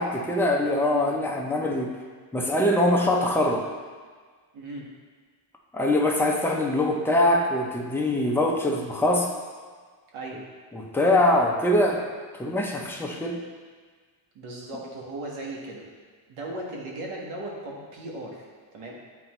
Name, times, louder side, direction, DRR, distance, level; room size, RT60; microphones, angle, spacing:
voice 1, 0.0-1.9 2.3-3.7 5.7-9.3 10.7-12.0 12.4-13.4, left 1 dB, 5° left, -1 dB, 0.4 m, -23 dB
voice 2, 4.5-4.9 10.1-10.4 14.3-15.8 16.3-18.9, right 2 dB, 85° right, -2 dB, 1.6 m, -37 dB
9.3 x 4.1 x 3.1 m, 1.5 s
cardioid pair, 165°, 49 cm